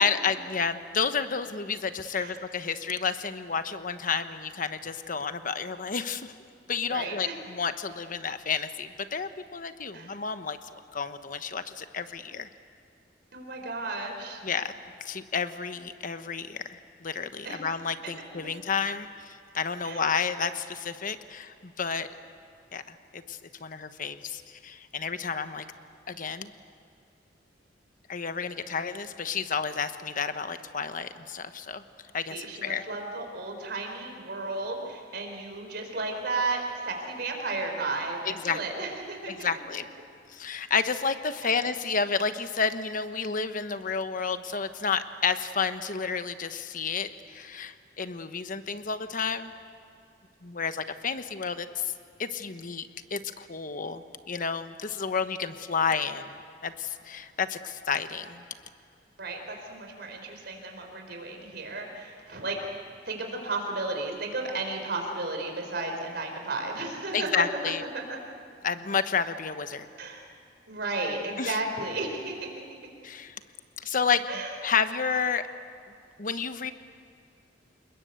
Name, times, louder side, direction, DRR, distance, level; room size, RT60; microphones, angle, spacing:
voice 1, 0.0-6.3 6.7-10.6 10.9-12.5 14.4-14.7 15.0-22.1 22.7-25.6 26.1-26.5 28.1-31.8 32.1-32.8 38.3-38.9 39.3-39.8 40.3-49.5 50.4-51.9 52.2-58.4 67.1-67.8 68.6-69.9 71.4-71.6 73.0-73.3 73.8-74.2 74.6-75.5 76.2-76.7, left 6 dB, 50° left, 10 dB, 1.1 m, -31 dB
voice 2, 6.9-7.4 9.9-10.1 13.3-14.4 17.4-17.6 19.8-20.0 32.3-39.5 41.4-41.6 59.2-62.6 63.1-67.5 67.9-68.0 70.0-70.2 70.7-72.5 74.3-74.5, right 3 dB, 60° right, 3 dB, 4.5 m, -33 dB
28.0 x 21.0 x 8.2 m, 2.4 s
head